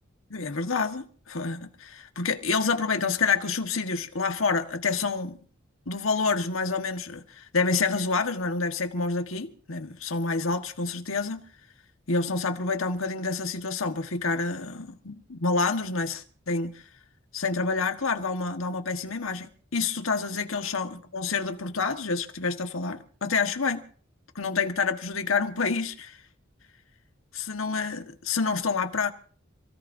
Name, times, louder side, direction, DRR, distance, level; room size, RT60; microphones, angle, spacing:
voice 1, 0.3-5.4 5.9-11.4 12.1-16.8 17.3-23.8 24.3-26.2 27.3-29.1, left 4 dB, 90° left, 1.6 m, -28 dB
28.0 x 17.0 x 2.8 m
head